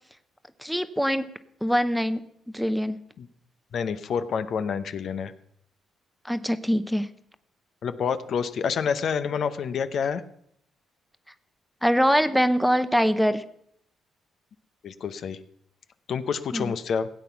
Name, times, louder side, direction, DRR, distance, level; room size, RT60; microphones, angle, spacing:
voice 1, 0.6-1.3 1.6-2.2 2.5-3.0 6.2-7.1 11.8-13.4 16.5-16.7, equal, ahead, 12 dB, 0.8 m, -23 dB
voice 2, 3.7-5.3 7.8-10.2 14.8-15.4 16.1-17.1, left 6 dB, 60° left, 11 dB, 0.7 m, -28 dB
16.5 x 8.3 x 5.8 m, 0.72 s
cardioid pair, 90°, 0 cm